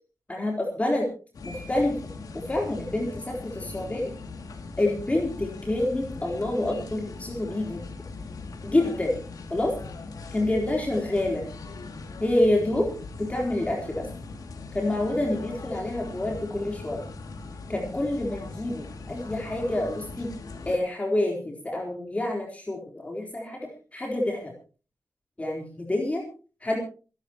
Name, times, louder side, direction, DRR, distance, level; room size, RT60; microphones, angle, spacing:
voice 1, 0.3-1.1 1.4-2.0 2.5-4.1 4.8-7.8 8.6-9.2 9.5-9.7 10.3-11.5 12.2-12.9 13.2-14.1 14.7-17.0 17.7-20.3 20.6-24.5 25.4-26.2 26.6-26.8, left 1 dB, 20° left, 0 dB, 4.0 m, -27 dB
sound 1, 1.3-20.8, left 3 dB, 85° left, 2.7 m, -40 dB
27.0 x 12.0 x 3.1 m, 0.36 s
wide cardioid pair, 125°, 6 cm